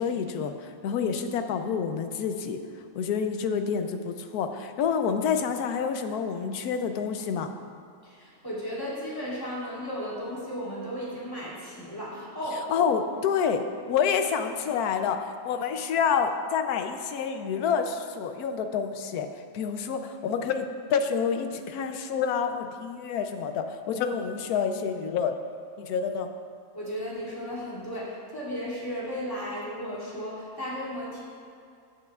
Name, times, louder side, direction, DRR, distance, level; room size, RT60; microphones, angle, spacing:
voice 1, 0.0-2.6 2.9-7.5 12.7-25.4 25.8-26.3, left 6 dB, 85° left, 7 dB, 1.1 m, -28 dB
voice 2, 8.0-12.9 26.7-31.2, equal, 15° left, -9 dB, 2.5 m, -35 dB
14.5 x 8.6 x 2.4 m, 2.3 s
omnidirectional pair, 1.6 m